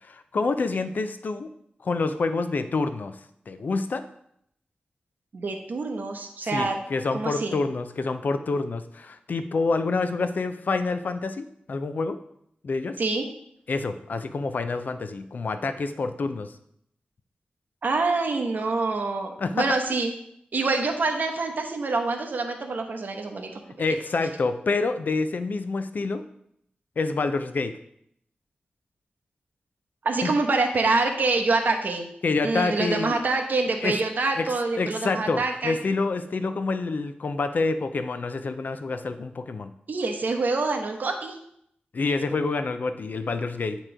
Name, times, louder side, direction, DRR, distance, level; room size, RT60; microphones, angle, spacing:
voice 1, 0.0-1.5 1.8-3.2 3.5-4.0 6.4-12.2 12.6-13.0 13.7-16.5 19.4-19.7 23.8-26.2 27.0-27.7 30.2-30.3 32.2-33.1 33.8-34.0 34.4-34.5 34.8-39.7 41.9-43.8, left 3 dB, 60° left, 9 dB, 0.5 m, -27 dB
voice 2, 5.3-6.8 7.1-7.6 13.0-13.3 17.8-20.1 20.5-23.6 30.0-32.1 32.4-35.8 39.9-41.4, right 3 dB, 60° right, 4 dB, 0.9 m, -26 dB
8.9 x 3.1 x 4.8 m, 0.73 s
wide cardioid pair, 120°, 3 cm